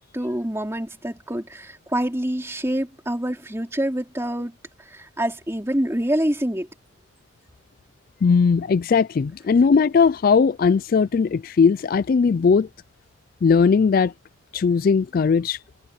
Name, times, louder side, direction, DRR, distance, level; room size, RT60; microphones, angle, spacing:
voice 1, 0.1-6.7, right 1 dB, 10° right, 3.3 m, -26 dB
voice 2, 8.2-12.7 13.4-14.1 14.5-15.6, left 5 dB, 45° left, 0.3 m, -18 dB
head